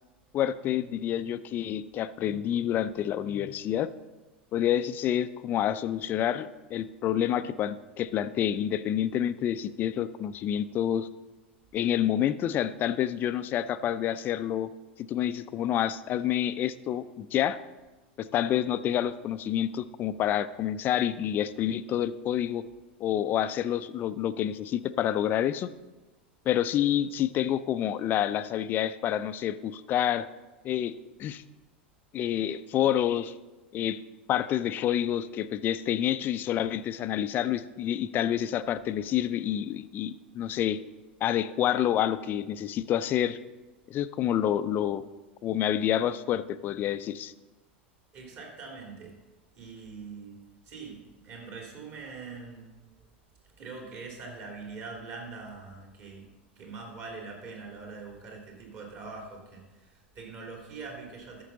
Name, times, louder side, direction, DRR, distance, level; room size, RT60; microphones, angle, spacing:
voice 1, 0.3-3.9 4.5-11.1 11.7-14.7 15.0-17.6 18.2-22.6 23.0-25.7 26.5-30.3 30.6-30.9 31.2-31.4 32.1-33.3 33.7-34.0 34.3-40.8 41.2-43.4 43.9-45.0 45.4-47.3, left 11 dB, 30° left, 13 dB, 0.4 m, -28 dB
voice 2, 48.1-49.2 49.5-50.4 50.6-52.7 53.6-56.2 56.6-61.4, right 4 dB, 40° right, 0 dB, 2.8 m, -43 dB
12.5 x 6.7 x 4.0 m, 1.2 s
figure-of-eight pair, 90°, 6 cm